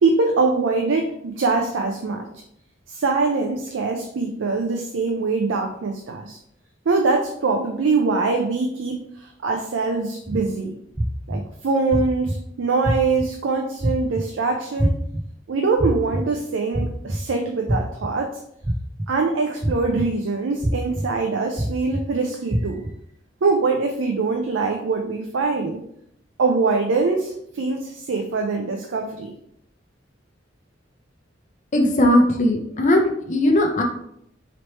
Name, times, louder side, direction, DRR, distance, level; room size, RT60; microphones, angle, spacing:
voice 1, 0.0-2.3 2.9-6.4 6.9-10.7 11.3-15.0 15.5-18.3 19.1-22.8 23.4-25.8 26.4-29.3, right 4 dB, 80° right, 3 dB, 0.4 m, -23 dB
sound 1, 10.3-10.4 11.0-11.4 11.9-12.4 12.8-13.3 13.8-14.2 14.8-15.2 15.8-16.2 16.7-17.2 17.7-18.1 18.6-19.1 19.6-20.0 20.6-21.0 21.6-22.0 22.5-22.9, right 1 dB, 10° right, 0.3 m, -23 dB
voice 2, 31.7-33.8, left 1 dB, 40° left, 2 dB, 0.6 m, -18 dB
3.2 x 3.0 x 4.1 m, 0.72 s
head